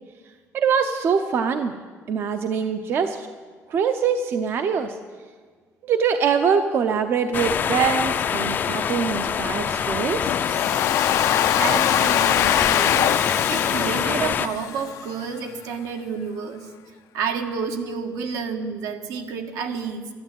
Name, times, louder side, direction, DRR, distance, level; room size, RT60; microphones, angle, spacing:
voice 1, 0.5-1.7 2.1-3.3 3.7-5.0 5.8-10.3, right 6 dB, 45° right, 8 dB, 0.6 m, -23 dB
sound 1, 7.3-14.5, left 7 dB, 35° left, 0.4 m, -24 dB
Domestic sounds home sounds, 10.3-15.2, left 12 dB, 90° left, 0.6 m, -23 dB
voice 2, 11.5-13.1 13.4-16.7 17.1-20.1, right 5 dB, 80° right, 5 dB, 1.5 m, -30 dB
12.5 x 11.5 x 9.0 m, 1.5 s
cardioid pair, 180°, 6 cm